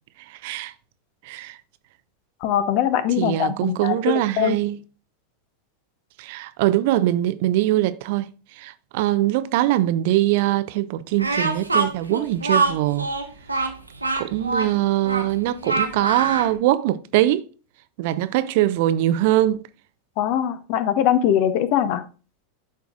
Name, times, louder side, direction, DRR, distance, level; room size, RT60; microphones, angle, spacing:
voice 1, 0.3-0.7 1.2-1.6 3.2-4.8 6.2-8.3 8.6-13.1 13.6-13.7 14.2-17.5 18.0-19.6, right 14 dB, 50° right, 0.5 m, -22 dB
voice 2, 2.4-4.6 20.2-22.0, left 10 dB, 45° left, 0.8 m, -22 dB
Speech, 11.2-16.5, right 3 dB, 85° right, 1.0 m, -24 dB
11.5 x 4.6 x 2.4 m
figure-of-eight pair, 85°, 0 cm